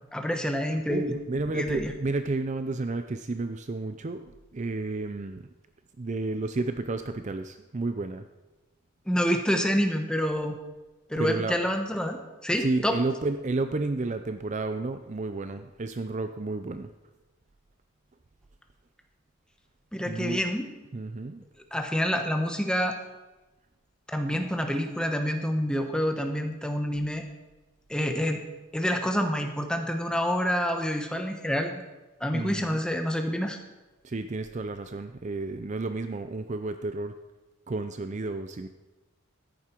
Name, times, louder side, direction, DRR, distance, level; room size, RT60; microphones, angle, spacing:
voice 1, 0.1-1.2 1.5-1.9 9.1-10.6 11.1-13.0 19.9-20.7 21.7-23.0 24.1-27.2 27.9-28.4 28.7-31.8 32.2-33.6, equal, 5° left, 4 dB, 1.0 m, -27 dB
voice 2, 0.7-5.5 6.0-8.3 11.2-11.6 12.6-16.9 20.0-20.4 20.9-21.4 32.3-32.8 34.0-37.1 37.7-38.7, right 3 dB, 35° right, 9 dB, 0.5 m, -31 dB
14.0 x 10.5 x 4.5 m, 1.1 s
head